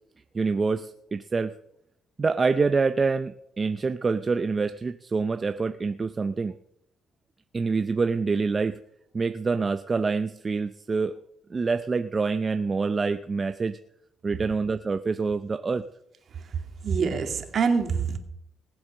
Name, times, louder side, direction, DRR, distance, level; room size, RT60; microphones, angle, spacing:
voice 1, 0.3-1.5 2.2-6.6 7.5-8.8 9.1-11.1 11.5-13.8 14.2-15.8, right 4 dB, 30° right, 9 dB, 0.6 m, -26 dB
voice 2, 16.5-18.2, right 5 dB, 55° right, 5 dB, 2.3 m, -26 dB
19.5 x 7.9 x 6.5 m, 0.77 s
cardioid pair, 90°, 0 cm